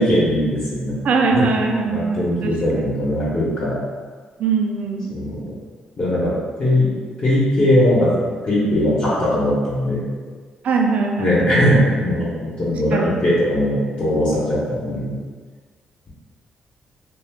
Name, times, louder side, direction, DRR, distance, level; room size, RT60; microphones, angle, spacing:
voice 1, 0.0-1.0 1.3-1.5 1.9-3.8 5.1-5.5 6.0-6.3 6.6-6.9 7.2-8.1 8.4-10.1 11.2-15.2, left 1 dB, 40° left, -9 dB, 0.9 m, -19 dB
voice 2, 1.0-2.5 4.4-5.2 10.6-11.4 12.9-13.1, right 4 dB, 60° right, 2 dB, 0.4 m, -21 dB
2.4 x 2.2 x 3.4 m, 1.5 s
cardioid pair, 100°, 3 cm